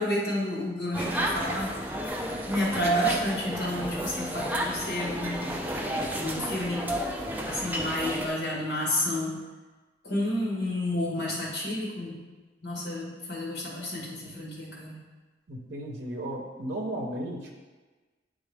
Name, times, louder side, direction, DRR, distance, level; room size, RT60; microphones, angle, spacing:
voice 1, 0.0-2.0 2.5-6.9 7.5-9.4 10.0-12.2 12.6-15.0, left 1 dB, 65° left, -4 dB, 1.8 m, -30 dB
sound 1, 0.9-8.3, equal, 10° right, 0.5 m, -32 dB
voice 2, 15.5-17.5, right 1 dB, 55° right, 1 dB, 0.8 m, -34 dB
9.3 x 3.6 x 3.4 m, 1.3 s
head